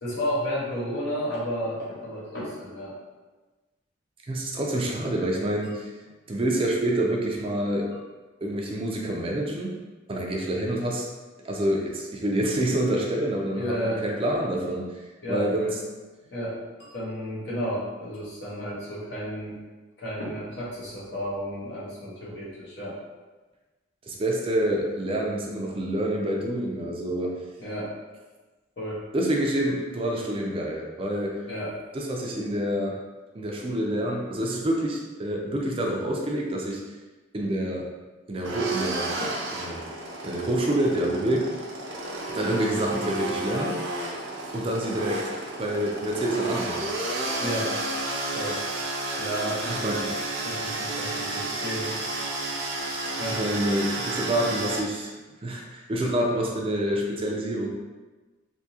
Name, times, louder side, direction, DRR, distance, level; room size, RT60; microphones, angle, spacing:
voice 1, 0.0-2.9 13.6-14.1 15.2-15.7 16.3-19.6 20.0-23.0 27.6-28.0 28.8-29.0 31.5-31.8 39.2-39.4 47.4-47.8 48.3-48.6 49.2-49.8 50.4-52.1 53.2-53.4, equal, 60° left, -6 dB, 1.1 m, -32 dB
voice 2, 4.2-5.9 6.3-7.9 8.4-9.8 10.1-11.1 11.4-14.9 15.3-15.7 24.1-27.4 29.1-31.4 31.9-33.0 33.3-36.8 37.3-37.9 38.3-39.1 39.5-39.8 40.2-41.5 42.3-43.8 44.5-45.3 45.6-46.9 49.7-50.1 53.4-55.1 55.4-57.7, right 1 dB, 30° right, -1 dB, 0.4 m, -27 dB
sound 1, 38.4-54.8, right 2 dB, 80° right, 0.6 m, -31 dB
3.5 x 2.7 x 2.8 m, 1.2 s
head